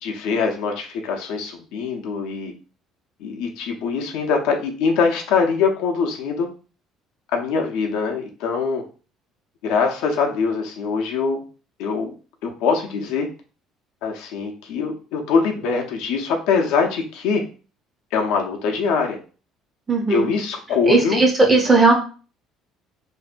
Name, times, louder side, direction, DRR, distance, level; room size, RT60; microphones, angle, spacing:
voice 1, 0.0-2.5 3.2-6.5 7.3-8.8 9.6-11.4 11.8-12.1 12.4-13.3 14.0-17.4 18.1-19.2 20.1-21.2, left 5 dB, 80° left, 2 dB, 0.6 m, -23 dB
voice 2, 19.9-20.3 20.8-21.9, right 3 dB, 15° right, 1 dB, 0.5 m, -16 dB
2.6 x 2.2 x 2.4 m, 0.37 s
cardioid pair, 175°, 0 cm